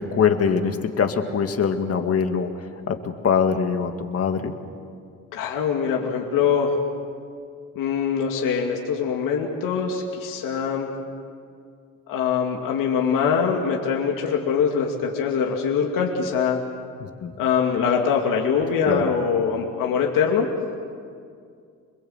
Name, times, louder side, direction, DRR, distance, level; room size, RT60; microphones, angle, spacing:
voice 1, 0.0-4.5 17.0-17.3 18.9-19.0, left 6 dB, 45° left, 6 dB, 2.1 m, -23 dB
voice 2, 5.3-6.7 7.8-10.9 12.1-16.6 17.4-20.5, left 6 dB, 80° left, 0 dB, 2.6 m, -23 dB
27.5 x 22.0 x 8.1 m, 2.3 s
cardioid pair, 115°, 33 cm